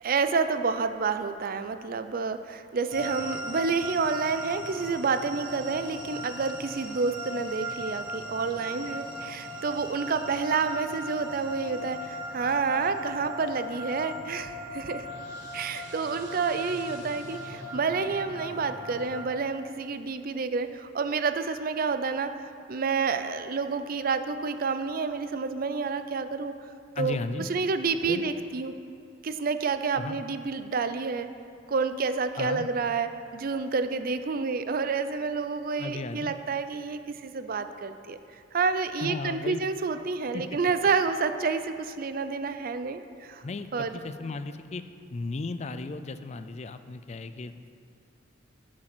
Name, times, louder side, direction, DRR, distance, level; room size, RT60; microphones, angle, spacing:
voice 1, 0.0-15.1 15.5-22.3 22.7-26.5 27.0-27.2 27.5-28.7 29.2-31.3 31.7-38.2 38.5-43.4 43.7-43.9, right 4 dB, 50° right, 10 dB, 0.5 m, -29 dB
sound 1, 2.9-19.2, equal, 80° right, 1.8 m, -38 dB
voice 2, 26.9-27.5 28.1-28.2 29.9-30.2 32.4-32.7 35.8-36.3 39.0-39.6 40.3-40.5 43.4-47.7, left 3 dB, 35° left, 11 dB, 0.4 m, -35 dB
10.0 x 6.4 x 6.1 m, 2.4 s
head